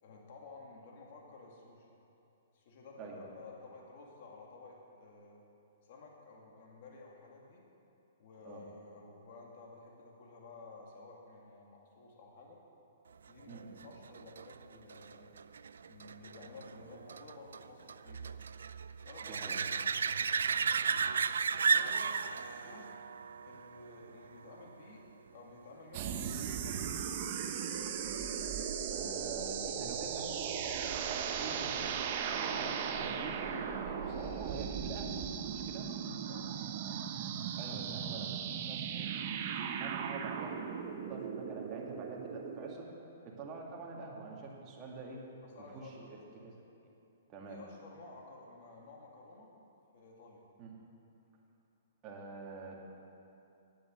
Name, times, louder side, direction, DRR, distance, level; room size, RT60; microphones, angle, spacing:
voice 1, 0.0-1.9 2.5-5.4 5.9-7.7 8.2-12.6 13.3-15.3 15.9-18.4 19.0-19.6 21.7-22.9 23.5-27.1 36.3-36.5 45.4-45.9 47.5-49.5 49.9-50.4, left 3 dB, 55° left, -1 dB, 2.1 m, -53 dB
sound 1, 13.5-24.8 30.4-30.5, right 6 dB, 85° right, 0.3 m, -35 dB
voice 2, 19.3-19.6 28.9-31.7 32.3-35.2 35.5-35.9 37.6-39.1 39.5-40.6 41.1-42.9 43.2-45.2 45.7-46.5 47.3-47.6 50.6-50.7 52.0-52.8, right 3 dB, 25° right, -2 dB, 2.0 m, -46 dB
sound 2, 25.9-42.8, right 7 dB, 45° right, 0.8 m, -37 dB
9.5 x 8.4 x 8.0 m, 2.8 s
hypercardioid pair, 145°, 0 cm